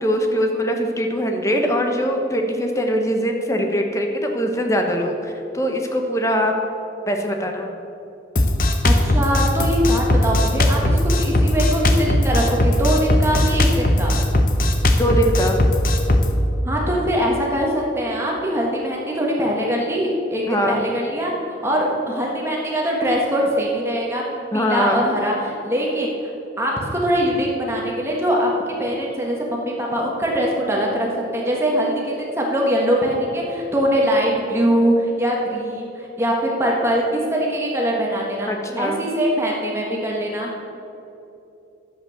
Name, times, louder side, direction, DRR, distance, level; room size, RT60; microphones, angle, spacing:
voice 1, 0.0-6.5 7.1-7.7 15.0-15.6 20.5-20.8 24.5-25.0 38.5-39.1, equal, 15° left, 3 dB, 0.9 m, -22 dB
Drum kit, 8.4-16.3, left 1 dB, 45° left, 0.8 m, -18 dB
voice 2, 8.8-14.2 16.6-21.3 21.6-26.1 26.6-38.5 38.8-40.5, equal, 15° right, -2 dB, 1.5 m, -22 dB
10.5 x 7.8 x 6.5 m, 2.9 s
head